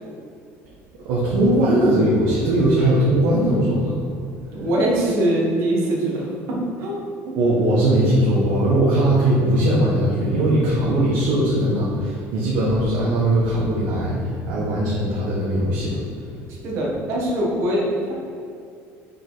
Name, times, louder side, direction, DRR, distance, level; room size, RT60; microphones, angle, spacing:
voice 1, 1.0-4.0 7.4-16.0, right 1 dB, 90° right, -7 dB, 1.2 m, -19 dB
voice 2, 4.5-7.0 7.3-7.4 16.5-18.1, right 1 dB, 50° right, -3 dB, 1.5 m, -23 dB
5.2 x 5.0 x 4.0 m, 2.5 s
cardioid pair, 175°, 6 cm